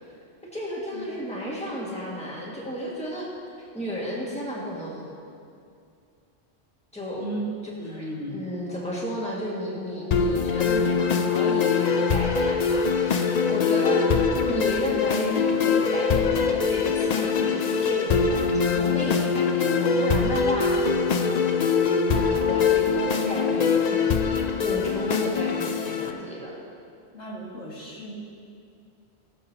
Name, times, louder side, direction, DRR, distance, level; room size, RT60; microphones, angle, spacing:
voice 1, 0.4-3.3 3.7-5.1 6.9-7.2 7.9-14.1 14.5-20.8 21.9-26.6, equal, 5° left, -5 dB, 1.9 m, -33 dB
voice 2, 7.8-8.4 27.1-28.1, right 1 dB, 85° left, -6 dB, 2.5 m, -35 dB
sound 1, 10.1-26.1, left 5 dB, 50° left, 0.6 m, -23 dB
20.0 x 7.3 x 2.9 m, 2.4 s
omnidirectional pair, 1.1 m